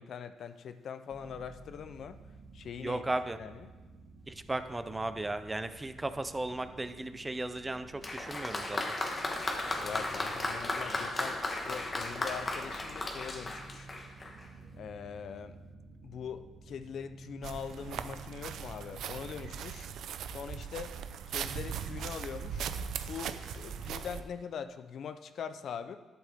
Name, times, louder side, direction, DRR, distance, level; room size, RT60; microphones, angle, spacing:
voice 1, 0.0-2.2 2.5-3.0 3.4-3.7 9.8-13.9 14.7-15.6 16.0-19.9 20.3-21.0 21.3-22.6 23.0-26.0, left 7 dB, 60° left, 11 dB, 0.5 m, -42 dB
sound 1, 1.1-19.7, right 3 dB, 45° right, 1.2 m, -52 dB
voice 2, 2.8-3.4 4.3-8.8, right 2 dB, 15° right, 11 dB, 0.5 m, -35 dB
Applause, 8.0-14.5, left 2 dB, 30° left, 1.3 m, -35 dB
sound 2, 17.4-24.2, right 7 dB, 75° right, 0.5 m, -39 dB
11.5 x 8.2 x 3.5 m, 1.2 s
cardioid pair, 90°, 0 cm